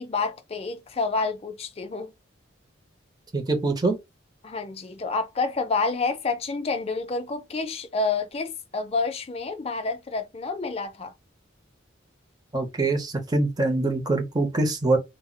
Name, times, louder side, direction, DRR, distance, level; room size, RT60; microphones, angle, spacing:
voice 1, 0.0-2.1 4.4-11.1, left 4 dB, 30° left, 0.4 m, -28 dB
voice 2, 3.3-4.0 12.5-15.0, right 2 dB, 20° right, 0.5 m, -24 dB
2.2 x 2.1 x 3.7 m
head